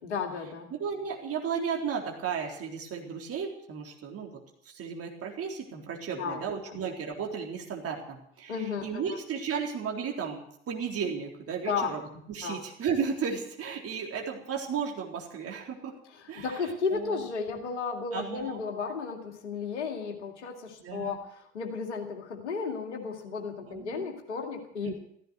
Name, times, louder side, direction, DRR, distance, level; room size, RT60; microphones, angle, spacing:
voice 1, 0.0-0.7 6.2-6.9 8.5-9.0 11.6-12.0 12.4-12.6 16.1-24.9, left 5 dB, 75° left, 4 dB, 2.4 m, -34 dB
voice 2, 0.7-4.4 4.7-12.0 12.3-15.9 16.3-16.6 16.9-17.2 17.6-17.8 18.1-18.6 20.8-21.2 23.6-24.1 24.8-25.0, right 6 dB, 40° right, 1 dB, 3.8 m, -34 dB
15.0 x 14.5 x 6.4 m, 0.69 s
figure-of-eight pair, 60°, 35 cm